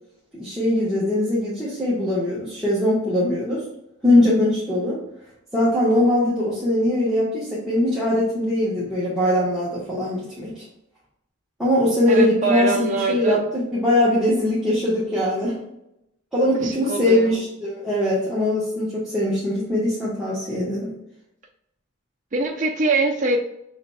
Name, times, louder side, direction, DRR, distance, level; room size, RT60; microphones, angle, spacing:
voice 1, 0.3-3.6 4.0-5.0 5.5-10.5 11.6-15.6 16.3-20.9, left 1 dB, ahead, -10 dB, 1.3 m, -21 dB
voice 2, 12.1-13.4 16.6-17.4 22.3-23.4, right 3 dB, 40° right, 0 dB, 0.6 m, -23 dB
5.7 x 3.9 x 2.3 m, 0.81 s
head